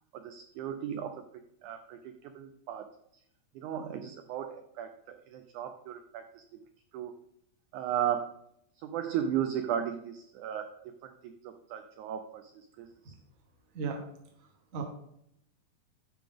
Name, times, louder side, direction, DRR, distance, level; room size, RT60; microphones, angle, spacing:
voice 1, 0.1-2.9 3.5-6.6 6.9-7.1 7.7-8.3 8.8-13.1, right 9 dB, 85° right, 7 dB, 1.7 m, -36 dB
voice 2, 14.4-14.8, right 5 dB, 70° right, 1 dB, 0.7 m, -36 dB
9.2 x 7.1 x 3.5 m, 0.73 s
omnidirectional pair, 4.1 m